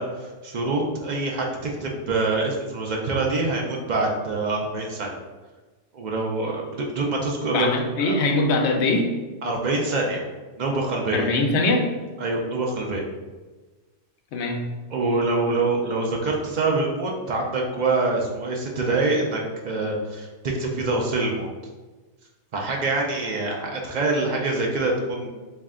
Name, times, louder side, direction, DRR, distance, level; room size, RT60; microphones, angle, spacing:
voice 1, 0.0-5.2 5.9-7.7 8.0-8.1 9.4-10.2 10.6-11.3 12.2-13.1 14.9-21.5 22.5-25.3, right 3 dB, 60° right, -1 dB, 0.5 m, -25 dB
voice 2, 7.5-9.1 11.1-11.9 14.3-14.6, left 2 dB, 65° left, 2 dB, 0.8 m, -22 dB
3.2 x 2.6 x 3.6 m, 1.3 s
omnidirectional pair, 1.3 m